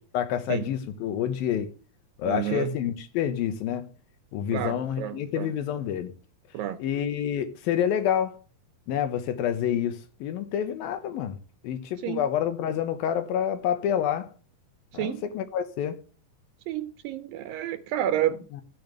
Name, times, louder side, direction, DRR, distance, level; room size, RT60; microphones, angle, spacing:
voice 1, 0.1-1.7 2.2-3.9 4.3-6.1 6.8-8.4 8.9-11.4 11.6-14.3 14.9-16.0 18.5-18.6, left 9 dB, 80° left, 2.9 m, -28 dB
voice 2, 2.2-2.8 4.5-5.5 6.5-6.8 12.0-12.3 14.9-15.2 16.7-18.4, right 12 dB, 80° right, 2.3 m, -30 dB
14.5 x 8.7 x 3.4 m
omnidirectional pair, 4.2 m